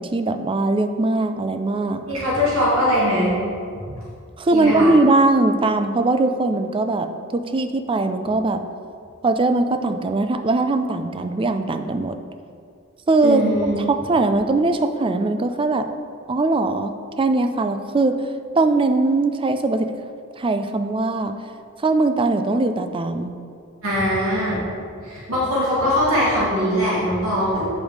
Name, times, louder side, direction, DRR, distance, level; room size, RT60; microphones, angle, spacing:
voice 1, 0.0-2.0 4.4-8.6 9.2-12.2 13.1-15.9 16.3-18.2 18.5-19.9 20.4-21.4 21.8-23.3, right 2 dB, 25° right, 8 dB, 0.4 m, -20 dB
voice 2, 2.1-3.4 3.7-3.8 4.5-4.9 13.2-13.8 23.8-24.6 25.0-27.7, equal, 85° right, -7 dB, 2.1 m, -21 dB
8.3 x 5.3 x 4.7 m, 2.3 s
head